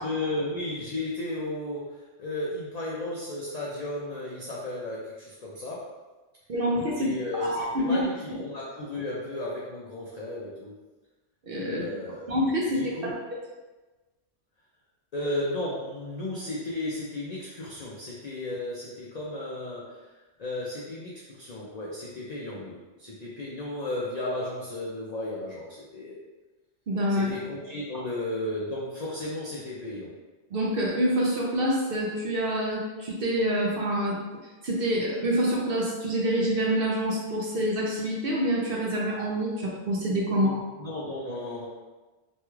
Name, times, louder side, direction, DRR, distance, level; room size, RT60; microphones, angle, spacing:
voice 1, 0.0-5.9 7.0-10.7 11.6-12.3 12.7-13.2 15.1-20.1 20.4-26.2 27.1-30.1 40.3-40.5 40.8-41.7, left 1 dB, 65° left, -5 dB, 0.4 m, -34 dB
voice 2, 6.5-7.1 7.4-8.0 8.3-8.4 11.5-11.8 12.3-13.1 26.9-27.3 30.5-34.2 34.6-40.6, equal, 60° right, -3 dB, 0.7 m, -26 dB
3.1 x 2.3 x 3.0 m, 1.2 s
omnidirectional pair, 1.3 m